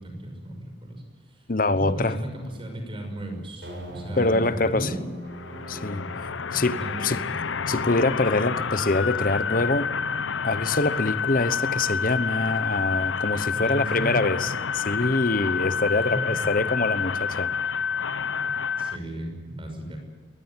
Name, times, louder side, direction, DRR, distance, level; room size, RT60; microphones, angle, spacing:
voice 1, 0.0-1.5 1.7-5.0 6.5-7.4 13.5-14.3 16.1-16.5 18.8-20.0, right 1 dB, 25° right, 5.9 m, -35 dB
voice 2, 1.5-2.2 4.2-4.9 5.7-7.2 7.7-9.9 10.4-17.5, left 2 dB, 45° left, 1.1 m, -25 dB
sound 1, 3.6-10.1, right 1 dB, 60° right, 7.2 m, -42 dB
sound 2, 5.3-19.0, left 6 dB, 80° left, 0.7 m, -29 dB
22.0 x 19.0 x 9.0 m
head